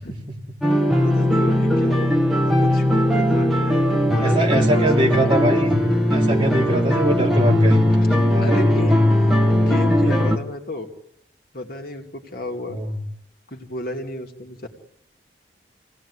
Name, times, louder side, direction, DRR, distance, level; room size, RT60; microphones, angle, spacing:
sound 1, 0.6-10.4, left 1 dB, ahead, 1.9 m, -19 dB
voice 1, 1.0-5.1 8.4-9.1 9.5-10.9 11.5-12.8 13.5-14.7, left 1 dB, 50° left, 3 dB, 2.7 m, -32 dB
voice 2, 4.2-5.8 6.1-7.8 8.2-8.7 12.7-13.0, right 1 dB, 25° right, -1 dB, 3.9 m, -23 dB
27.5 x 18.5 x 9.9 m, 0.77 s
head